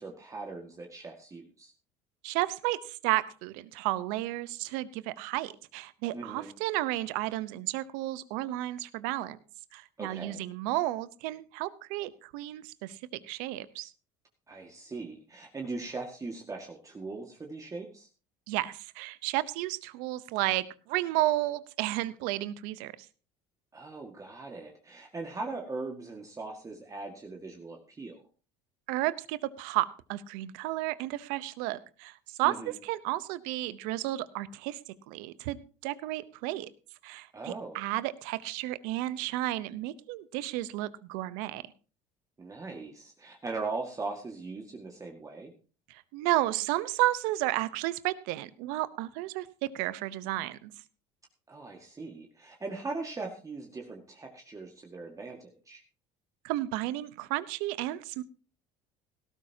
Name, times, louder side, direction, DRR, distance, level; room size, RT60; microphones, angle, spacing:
voice 1, 0.0-1.7 6.1-6.5 10.0-10.4 14.5-18.1 23.7-28.2 32.4-32.8 37.3-37.8 42.4-45.5 51.5-55.8, right 3 dB, 20° right, 2 dB, 1.9 m, -40 dB
voice 2, 2.2-9.4 9.7-13.0 13.3-13.9 18.5-22.9 28.9-34.8 35.1-35.6 35.8-36.7 37.0-41.6 46.1-50.7 56.4-58.2, right 16 dB, 80° right, 16 dB, 0.9 m, -32 dB
17.5 x 12.5 x 2.8 m, 0.36 s
supercardioid pair, 95°, 14 cm